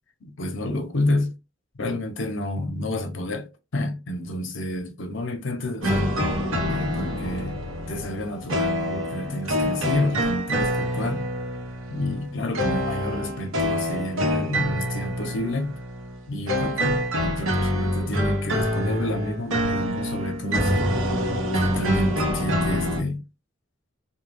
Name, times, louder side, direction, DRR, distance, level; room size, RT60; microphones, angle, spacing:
voice 1, 0.2-1.3 1.7-6.2 6.6-7.6 7.9-11.2 11.9-15.8 16.3-20.9 21.6-23.2, left 1 dB, 65° left, 0.6 m, -29 dB
sound 1, 5.8-23.0, equal, 90° right, 0.8 m, -26 dB
2.2 x 2.2 x 3.2 m
head